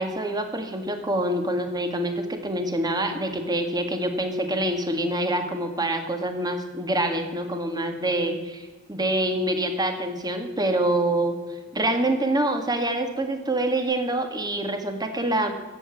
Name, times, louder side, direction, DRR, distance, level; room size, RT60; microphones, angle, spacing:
voice 1, 0.0-11.4 11.7-15.5, right 1 dB, 20° right, 6 dB, 1.8 m, -26 dB
14.0 x 8.1 x 9.8 m, 1.4 s
head